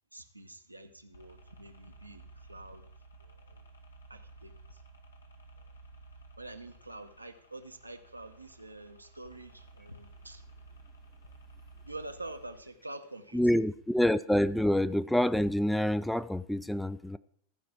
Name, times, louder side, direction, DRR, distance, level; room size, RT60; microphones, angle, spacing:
voice 1, 0.1-2.9 3.2-3.7 4.1-4.8 6.4-10.4 11.8-13.6, right 2 dB, 85° right, 7 dB, 0.8 m, -46 dB
sound 1, 1.1-12.6, right 3 dB, 75° left, 1.2 m, -54 dB
voice 2, 13.3-17.2, left 1 dB, ahead, 14 dB, 0.3 m, -27 dB
14.0 x 5.0 x 6.0 m, 0.63 s
figure-of-eight pair, 90°, 0 cm